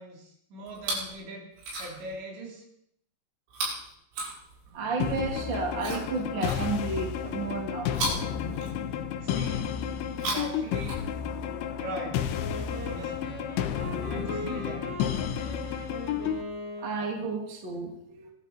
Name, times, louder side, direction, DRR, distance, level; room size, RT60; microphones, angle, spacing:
voice 1, 0.0-1.5 1.8-2.6 9.2-9.7 10.1-11.0 11.8-12.3 12.8-13.4 14.1-14.9, right 2 dB, 65° right, -1 dB, 5.7 m, -40 dB
Chewing mastication, 0.7-1.2 1.5-2.2 3.5-4.9 5.8-7.0 7.9-9.2 10.0-11.4 12.4-12.5, right 2 dB, 85° right, 9.9 m, -36 dB
voice 2, 4.7-8.0 16.8-18.3, right 4 dB, 35° right, 1 dB, 2.0 m, -32 dB
sound 1, 5.0-16.4, left 8 dB, 75° left, 3.3 m, -32 dB
Wind instrument woodwind instrument, 12.4-17.6, left 1 dB, ahead, 6.9 m, -40 dB
25.0 x 12.0 x 4.4 m, 0.72 s
omnidirectional pair, 5.6 m